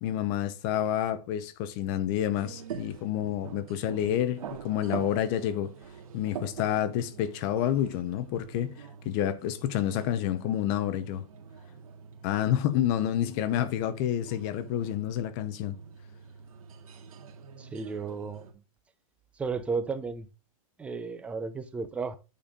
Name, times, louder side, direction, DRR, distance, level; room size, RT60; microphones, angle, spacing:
voice 1, 0.0-5.7 6.1-8.7 9.0-11.2 12.2-15.8, left 11 dB, 30° left, 0.8 m, -29 dB
sound 1, 2.3-18.5, right 7 dB, 75° right, 2.1 m, -45 dB
voice 2, 17.6-18.5 19.4-20.3 20.8-22.2, right 4 dB, 5° right, 0.5 m, -33 dB
8.6 x 4.2 x 5.2 m
supercardioid pair, 165°, 18 cm